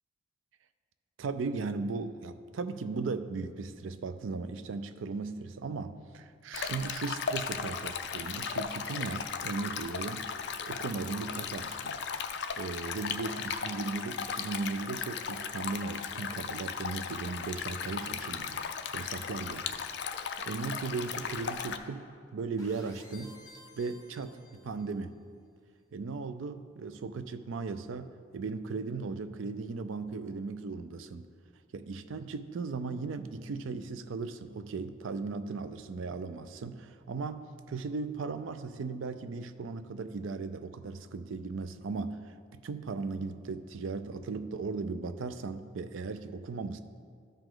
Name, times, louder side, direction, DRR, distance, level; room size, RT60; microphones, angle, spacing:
voice 1, 1.2-10.3 10.6-12.0 12.6-18.6 18.9-19.6 20.4-23.4 23.8-25.1 25.9-31.3 31.7-46.8, right 4 dB, 80° right, 11 dB, 0.4 m, -37 dB
Stream, 6.5-21.8, left 6 dB, 60° left, 0.4 m, -36 dB
sound 1, 22.6-25.0, left 1 dB, 15° left, 1.1 m, -54 dB
13.0 x 4.9 x 3.8 m, 2.1 s
head